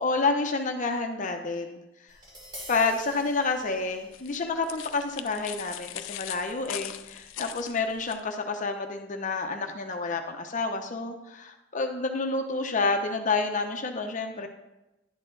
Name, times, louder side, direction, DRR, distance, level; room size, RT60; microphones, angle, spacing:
voice 1, 0.0-1.8 2.7-14.5, left 3 dB, 40° left, 5 dB, 0.7 m, -29 dB
Tap, 2.1-8.2, equal, 25° right, 2.4 m, -50 dB
sound 1, 4.1-8.2, left 13 dB, 85° left, 0.4 m, -40 dB
11.0 x 4.4 x 3.9 m, 0.94 s
head